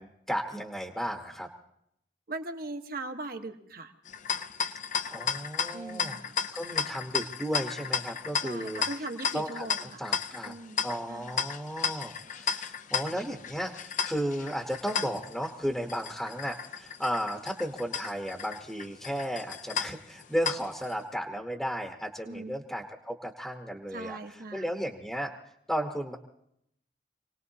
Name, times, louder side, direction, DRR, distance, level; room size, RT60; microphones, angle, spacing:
voice 1, 0.0-1.5 5.1-6.2 6.5-8.8 9.3-10.5 10.8-24.2 24.5-25.3 25.7-26.2, equal, ahead, 2 dB, 1.0 m, -34 dB
voice 2, 2.3-3.9 5.7-6.4 8.4-10.0 10.4-11.3 22.3-22.6 23.9-24.9, right 2 dB, 60° right, 5 dB, 1.3 m, -40 dB
sound 1, 4.0-20.9, left 7 dB, 45° left, 0.6 m, -34 dB
27.5 x 18.5 x 2.8 m, 0.74 s
head